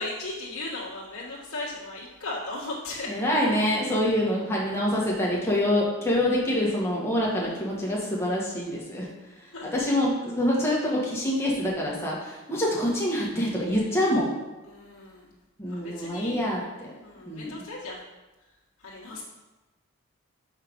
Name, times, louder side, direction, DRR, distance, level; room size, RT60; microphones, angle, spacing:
voice 1, 0.0-3.1 7.3-8.0 9.5-9.7 14.6-15.3 15.6-16.4 17.0-18.0 18.8-19.2, left 2 dB, 80° left, -6 dB, 1.8 m, -37 dB
voice 2, 3.1-9.1 9.7-14.3 15.6-16.9 17.3-17.6, left 1 dB, 10° left, -4 dB, 1.6 m, -26 dB
5.7 x 5.6 x 5.4 m, 1.1 s
head